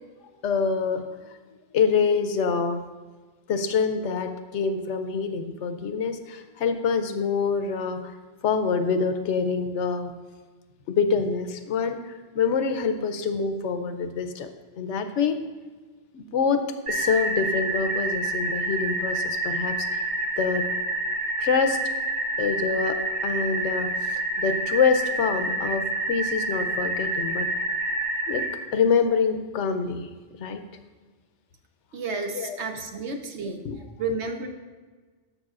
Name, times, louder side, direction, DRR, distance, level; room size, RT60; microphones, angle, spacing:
voice 1, 0.4-1.2 1.7-2.8 3.5-8.1 8.4-10.1 10.9-14.5 14.8-15.4 16.1-20.0 20.4-20.6 21.4-21.8 22.4-27.5 28.3-28.4 28.7-30.1 30.4-30.6 32.3-32.6 33.6-33.8, left 5 dB, 90° left, 9 dB, 1.0 m, -26 dB
sound 1, 16.9-28.5, right 2 dB, 55° right, 1.6 m, -28 dB
voice 2, 31.9-33.6 34.0-34.5, right 3 dB, 75° right, 4 dB, 1.1 m, -31 dB
12.0 x 6.8 x 2.4 m, 1.4 s
omnidirectional pair, 1.2 m